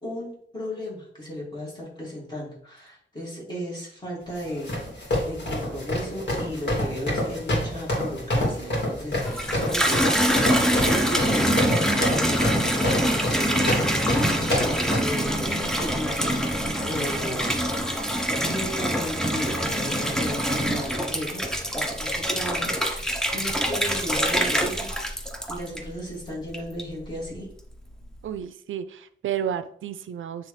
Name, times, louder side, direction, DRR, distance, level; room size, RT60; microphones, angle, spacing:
voice 1, 0.0-17.8 18.4-24.9 25.5-27.5, equal, 20° left, -5 dB, 2.4 m, -35 dB
sound 1, 4.4-15.0, left 1 dB, 60° left, 2.4 m, -27 dB
Water tap faucet / Bathtub (filling or washing), 9.1-26.1 26.5-27.1, equal, 5° left, 0.6 m, -25 dB
voice 2, 28.2-30.5, right 9 dB, 90° right, 12 dB, 0.4 m, -31 dB
8.7 x 3.4 x 3.2 m, 0.65 s
wide cardioid pair, 150°, 20 cm